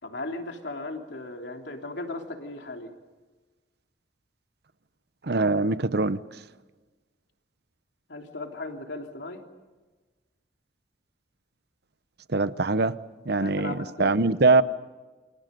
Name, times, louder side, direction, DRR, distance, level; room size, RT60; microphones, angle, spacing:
voice 1, 0.0-2.9 8.1-9.4 13.4-14.6, left 2 dB, 65° left, 3 dB, 3.2 m, -37 dB
voice 2, 5.2-6.2 12.3-12.9 13.3-14.6, right 3 dB, 55° right, 14 dB, 0.9 m, -22 dB
29.0 x 27.0 x 5.3 m, 1.2 s
head